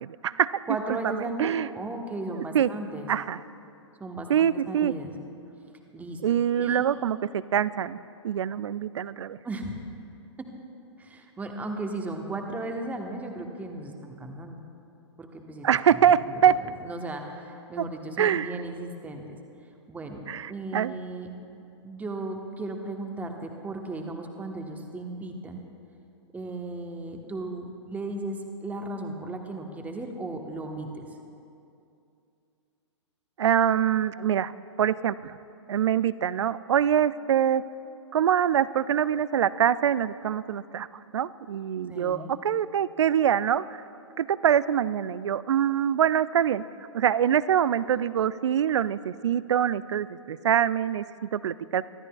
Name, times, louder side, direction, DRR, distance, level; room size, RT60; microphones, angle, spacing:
voice 1, 0.0-0.5 0.9-1.7 2.5-2.7 3.1-3.4 4.3-4.9 6.2-8.0 8.2-9.4 15.6-16.6 17.8-17.9 18.2-18.6 20.3-20.9 33.4-34.5 34.8-35.4 35.7-37.6 38.1-40.9 41.1-43.6 44.2-46.6 46.9-51.9, right 9 dB, 70° right, 17 dB, 0.4 m, -24 dB
voice 2, 0.7-3.1 4.0-5.1 5.9-6.2 6.6-6.8 9.4-9.7 11.0-14.6 15.2-15.7 15.9-16.5 16.8-19.4 19.9-20.2 20.5-21.3 21.8-25.6 26.3-31.0 41.9-42.3, right 2 dB, 10° right, 3 dB, 1.2 m, -36 dB
24.5 x 13.0 x 2.4 m, 2.6 s
figure-of-eight pair, 115°, 16 cm